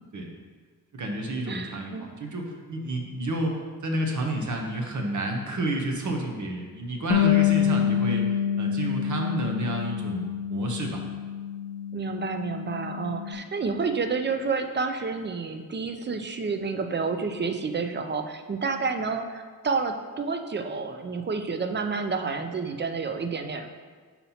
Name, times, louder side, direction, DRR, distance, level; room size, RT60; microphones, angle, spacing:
voice 1, 0.9-8.2 8.6-11.0, right 1 dB, 55° right, 1 dB, 0.9 m, -30 dB
voice 2, 1.5-2.1 11.9-23.7, right 4 dB, 30° right, 6 dB, 0.4 m, -29 dB
Bass guitar, 7.1-13.4, left 9 dB, 80° left, 0.5 m, -27 dB
4.2 x 4.2 x 5.6 m, 1.5 s
wide cardioid pair, 145°, 35 cm